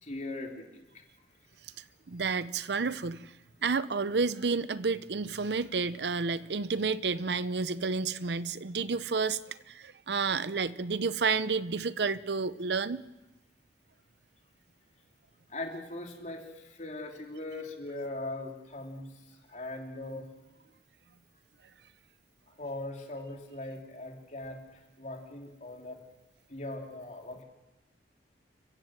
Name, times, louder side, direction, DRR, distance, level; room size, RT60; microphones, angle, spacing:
voice 1, 0.0-1.0 15.5-20.3 22.6-26.0 26.5-27.4, left 2 dB, 45° left, 2 dB, 3.4 m, -40 dB
voice 2, 2.1-3.3 3.6-13.0, right 4 dB, 70° right, 16 dB, 0.7 m, -30 dB
29.5 x 15.5 x 7.7 m, 1.0 s
head